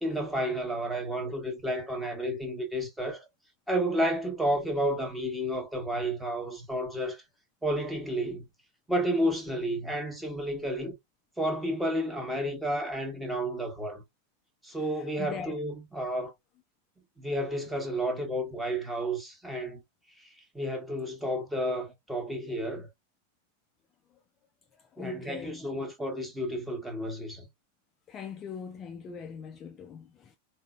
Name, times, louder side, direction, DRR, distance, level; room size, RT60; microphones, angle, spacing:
voice 1, 0.0-3.2 3.7-7.2 7.6-8.5 8.9-10.9 11.4-14.0 14.6-16.3 17.2-19.8 20.2-20.3 20.5-22.9 25.0-27.5, equal, 5° right, 0.9 m, -31 dB
voice 2, 14.7-15.6 24.1-24.2 24.7-25.6 28.1-30.4, left 7 dB, 25° left, 0.3 m, -42 dB
3.7 x 2.0 x 2.2 m
figure-of-eight pair, 90°, 0 cm